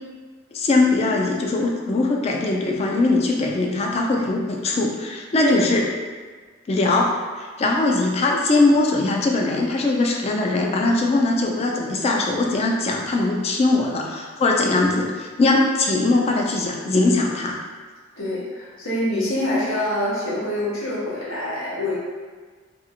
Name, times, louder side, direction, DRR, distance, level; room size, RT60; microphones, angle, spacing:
voice 1, 0.5-5.9 6.7-17.6, left 2 dB, 30° left, 0 dB, 0.3 m, -21 dB
voice 2, 5.4-5.7 18.2-22.0, left 1 dB, 85° left, -7 dB, 0.9 m, -25 dB
2.6 x 2.5 x 2.7 m, 1.5 s
head